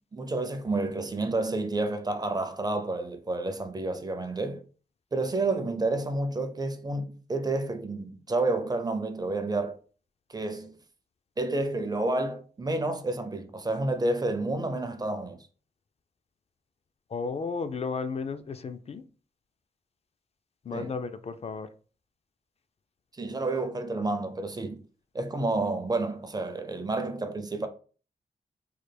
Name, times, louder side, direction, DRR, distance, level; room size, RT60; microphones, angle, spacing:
voice 1, 0.1-4.6 5.1-9.8 10.3-10.8 11.4-15.5 20.7-20.9 23.2-24.8 25.1-27.7, right 2 dB, 25° right, 0.4 m, -30 dB
voice 2, 17.1-19.0 20.6-21.7, left 4 dB, 40° left, 0.4 m, -33 dB
3.2 x 2.1 x 3.3 m
cardioid pair, 80°, 16 cm